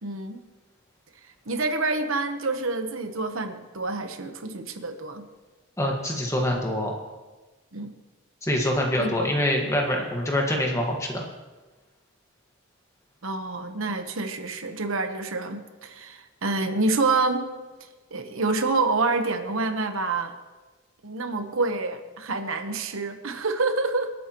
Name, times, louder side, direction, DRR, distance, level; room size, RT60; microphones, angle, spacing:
voice 1, 0.0-0.4 1.5-5.3 7.7-7.9 9.0-9.3 13.2-17.4 18.1-20.3 21.0-24.1, right 3 dB, 70° right, 7 dB, 1.0 m, -27 dB
voice 2, 5.8-6.9 8.4-11.2, left 1 dB, 15° left, 0 dB, 1.5 m, -25 dB
26.5 x 8.9 x 3.0 m, 1.2 s
head